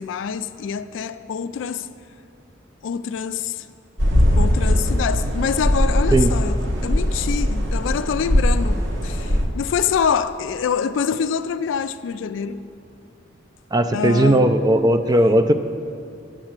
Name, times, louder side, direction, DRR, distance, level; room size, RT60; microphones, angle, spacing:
voice 1, 0.0-1.9 2.8-3.7 4.4-12.6 13.9-14.5, left 7 dB, 70° left, 0.3 m, -25 dB
sound 1, 4.0-9.5, equal, 80° right, 1.1 m, -20 dB
voice 2, 13.7-15.5, right 1 dB, 20° right, 0.4 m, -17 dB
8.8 x 6.4 x 7.4 m
head